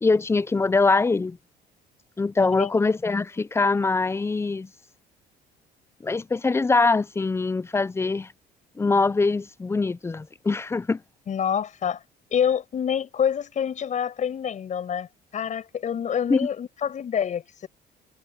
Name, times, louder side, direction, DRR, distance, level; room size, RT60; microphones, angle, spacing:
voice 1, 0.0-1.4 2.2-4.7 6.0-8.3 8.8-11.0 16.3-16.5, left 3 dB, 15° left, 0.6 m, -23 dB
voice 2, 2.4-2.7 11.3-12.0 12.3-15.1 15.3-17.7, left 8 dB, 45° left, 6.2 m, -27 dB
cardioid pair, 110°, 17 cm